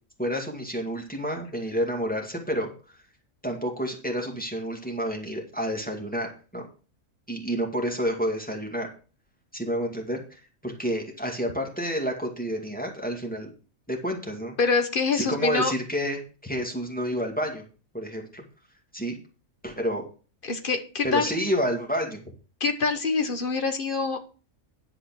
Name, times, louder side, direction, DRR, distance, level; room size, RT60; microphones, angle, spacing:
voice 1, 0.2-2.7 3.4-6.6 7.3-8.9 9.5-13.5 13.9-14.5 15.1-17.6 17.9-18.4 18.9-19.2 19.6-20.0 21.0-22.2, equal, 5° left, 0 dB, 2.1 m, -29 dB
voice 2, 14.6-15.7 20.4-21.3 22.6-24.2, left 4 dB, 45° left, 7 dB, 1.2 m, -25 dB
10.5 x 4.8 x 6.0 m, 0.36 s
omnidirectional pair, 1.4 m